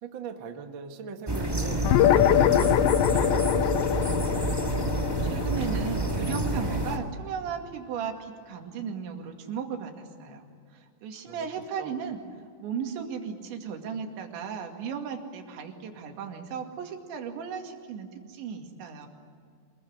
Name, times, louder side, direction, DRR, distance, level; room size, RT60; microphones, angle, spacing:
voice 1, 0.0-3.9 11.3-11.5 11.8-12.0, right 5 dB, 55° right, 4 dB, 1.3 m, -40 dB
sound 1, 1.3-7.0, right 2 dB, 20° right, 0.6 m, -28 dB
sound 2, 1.8-6.7, left 12 dB, 85° left, 3.0 m, -24 dB
voice 2, 4.8-10.5 10.7-12.2 12.6-19.1, right 7 dB, 80° right, 3 dB, 4.6 m, -36 dB
26.5 x 22.0 x 9.8 m, 2.2 s
omnidirectional pair, 5.1 m